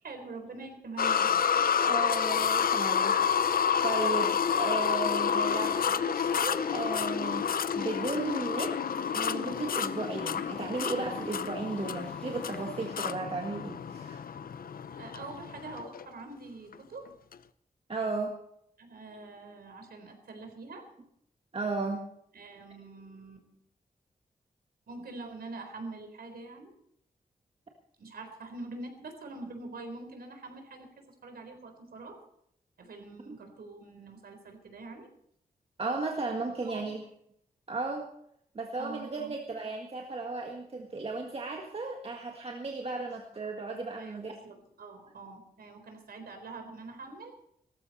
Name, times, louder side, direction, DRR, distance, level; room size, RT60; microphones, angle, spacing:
voice 1, 0.0-1.7 14.9-17.0 18.8-20.8 22.3-23.4 24.9-26.7 28.0-30.9 31.2-32.2 32.8-35.1 36.6-36.9 38.8-39.3 44.0-47.3, right 3 dB, 85° right, 5 dB, 4.0 m, -44 dB
sound 1, 1.0-16.0 16.7-16.8 17.3-17.4, left 7 dB, 70° left, 0.7 m, -29 dB
voice 2, 1.8-3.5 3.8-7.5 7.7-8.8 9.1-14.2 17.9-18.4 21.5-22.1 33.3-33.4 35.8-37.0 37.7-38.1 38.6-44.3, right 3 dB, 40° right, 1 dB, 1.7 m, -35 dB
sound 2, 2.3-12.9, equal, 10° left, 3.3 m, -55 dB
18.0 x 14.5 x 4.2 m, 0.72 s
wide cardioid pair, 135°, 15 cm